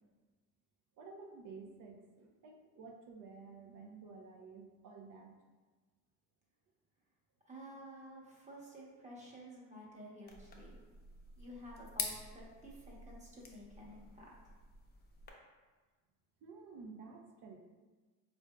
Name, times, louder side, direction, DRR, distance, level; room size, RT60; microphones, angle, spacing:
voice 1, 1.0-5.3 16.4-17.6, right 4 dB, 75° right, 3 dB, 0.6 m, -52 dB
voice 2, 7.5-10.8 11.4-14.3, equal, 20° right, -4 dB, 0.9 m, -52 dB
sound 1, 10.3-15.3, left 4 dB, 30° left, 0.5 m, -47 dB
4.4 x 2.5 x 2.2 m, 1.3 s
cardioid pair, 120°, 32 cm